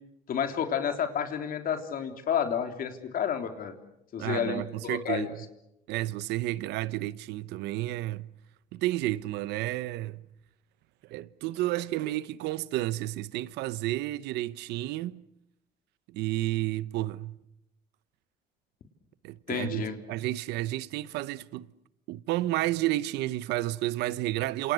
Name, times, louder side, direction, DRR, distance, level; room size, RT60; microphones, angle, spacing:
voice 1, 0.3-3.7 4.1-5.3 19.5-19.9, left 8 dB, 60° left, 3.6 m, -30 dB
voice 2, 4.2-5.3 5.9-8.3 8.7-10.2 11.1-15.2 16.1-17.4 19.2-21.7 22.1-24.7, right 16 dB, 90° right, 0.9 m, -31 dB
28.0 x 27.5 x 6.4 m
cardioid pair, 110°, 17 cm